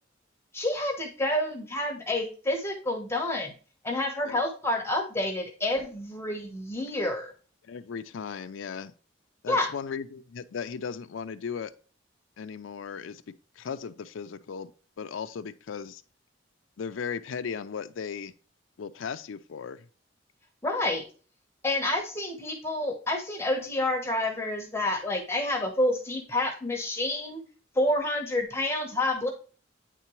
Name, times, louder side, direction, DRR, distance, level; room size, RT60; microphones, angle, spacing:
voice 1, 0.5-3.5 3.8-7.3 9.5-9.7 20.6-21.0 21.6-27.4 27.7-29.3, left 1 dB, 15° left, 1.0 m, -28 dB
voice 2, 7.6-8.9 9.4-11.7 12.4-14.7 15.0-16.0 16.8-18.3 18.8-19.9, left 6 dB, 90° left, 0.4 m, -36 dB
9.2 x 3.7 x 3.0 m
head